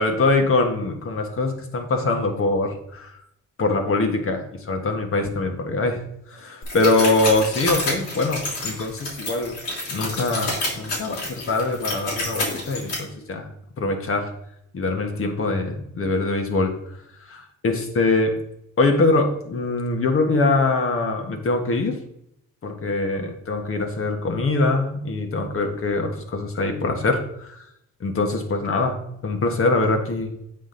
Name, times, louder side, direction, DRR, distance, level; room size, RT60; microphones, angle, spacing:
voice 1, 0.0-3.2 3.6-6.0 6.3-9.6 9.9-13.5 13.8-14.3 14.7-17.0 17.2-18.4 18.8-22.0 22.6-27.7 28.0-30.3, left 2 dB, 45° left, 5 dB, 1.4 m, -23 dB
sound 1, 6.6-12.9, left 2 dB, 80° left, 2.9 m, -29 dB
7.9 x 5.0 x 3.9 m, 0.78 s
cardioid pair, 90°, 30 cm